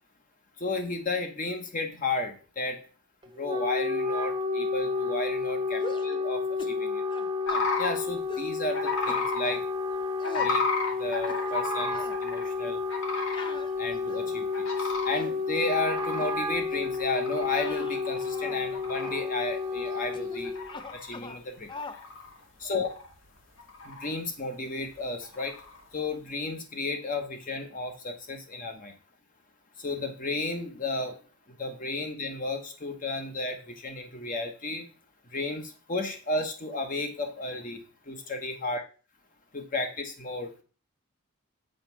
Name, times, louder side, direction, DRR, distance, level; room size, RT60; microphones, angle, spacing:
voice 1, 0.6-2.8 3.4-7.0 7.8-9.6 10.4-10.6 11.0-12.8 13.8-20.5 20.9-21.7 22.6-22.9 23.8-25.6 25.9-28.9 29.8-31.1 31.6-34.9 35.3-38.8 39.5-40.6, left 2 dB, 35° left, 5 dB, 1.0 m, -33 dB
Wind instrument woodwind instrument, 3.2-20.7, left 4 dB, 20° right, 0.9 m, -31 dB
sound 1, 5.8-6.2 6.6-6.8 7.1-7.7 8.3-8.5 9.1-9.6 10.2-10.5 11.1-11.7 11.9-12.2 13.3-14.4 14.9-15.4 16.1-16.3 16.7-16.9 17.4-18.7 19.0-19.2 20.1-20.4 20.7-21.4 21.7-22.0, left 3 dB, 20° left, 0.4 m, -42 dB
sound 2, 7.5-7.9 8.7-9.4 10.2-12.5 12.9-13.5 13.9-14.0 14.5-15.2 15.7-17.6 17.9-18.3 18.7-19.2 19.8-19.9 20.3-21.1 21.7-22.4 22.7-23.3 23.6-24.1 25.2-25.8, left 3 dB, 60° left, 1.9 m, -32 dB
7.6 x 4.3 x 6.0 m, 0.37 s
head